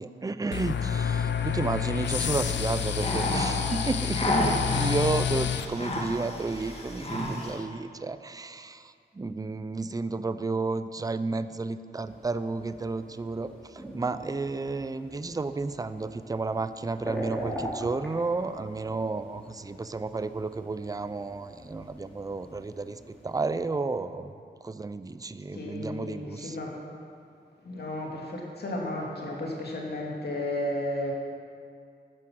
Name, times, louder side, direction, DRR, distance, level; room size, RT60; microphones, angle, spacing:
voice 1, 0.0-24.3 24.6-26.6, right 3 dB, 20° right, 12 dB, 0.5 m, -32 dB
sound 1, 0.5-5.7, left 8 dB, 85° left, 0.6 m, -29 dB
sound 2, 2.0-7.6, left 1 dB, 35° left, 2.1 m, -32 dB
sound 3, 12.0-23.6, equal, 5° left, 3.7 m, -43 dB
voice 2, 25.5-26.7 27.6-31.1, left 1 dB, 65° left, -2 dB, 2.5 m, -33 dB
11.0 x 10.0 x 6.3 m, 2.4 s
cardioid pair, 70°, 18 cm